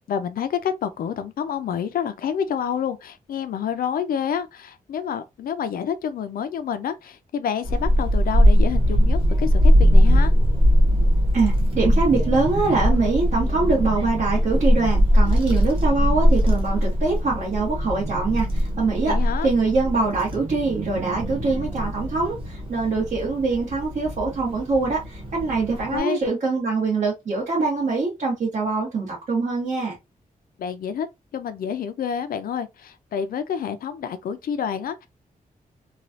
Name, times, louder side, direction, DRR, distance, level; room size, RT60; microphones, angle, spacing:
voice 1, 0.1-10.3 19.1-19.5 25.9-26.2 30.6-31.1 31.3-35.1, left 8 dB, 80° left, 0.4 m, -28 dB
Child speech kid speaking / Wind, 7.6-26.0, equal, 40° right, 0.9 m, -21 dB
voice 2, 11.3-30.0, right 4 dB, 60° right, 1.2 m, -23 dB
3.1 x 2.3 x 2.6 m
wide cardioid pair, 165°, 15 cm